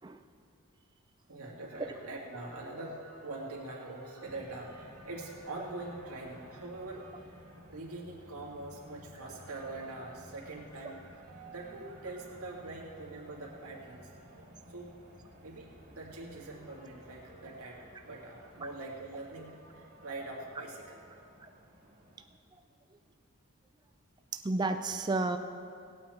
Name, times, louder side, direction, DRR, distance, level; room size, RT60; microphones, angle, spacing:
voice 1, 1.3-14.4 14.7-14.9 15.4-21.2, right 2 dB, 85° right, -2 dB, 2.2 m, -44 dB
sound 1, 4.2-22.2, equal, 35° right, 1.9 m, -55 dB
voice 2, 24.3-25.4, right 2 dB, 20° right, 6 dB, 0.4 m, -31 dB
18.5 x 8.5 x 4.4 m, 2.4 s
head